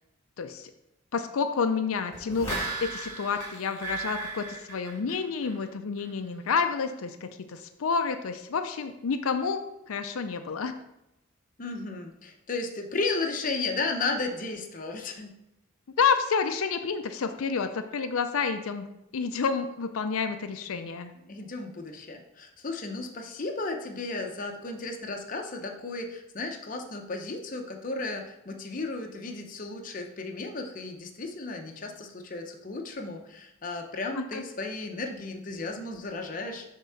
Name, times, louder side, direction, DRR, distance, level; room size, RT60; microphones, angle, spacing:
voice 1, 0.4-0.7 1.1-9.6 9.9-10.7 16.0-18.9 19.1-21.1 34.2-34.4, left 5 dB, 85° left, 8 dB, 0.5 m, -29 dB
sound 1, 2.1-5.7 6.0-6.1, right 3 dB, 15° left, 2.4 m, -36 dB
voice 2, 11.6-15.3 21.3-36.6, left 3 dB, 40° left, 4 dB, 0.7 m, -34 dB
6.9 x 3.7 x 5.7 m, 0.87 s
head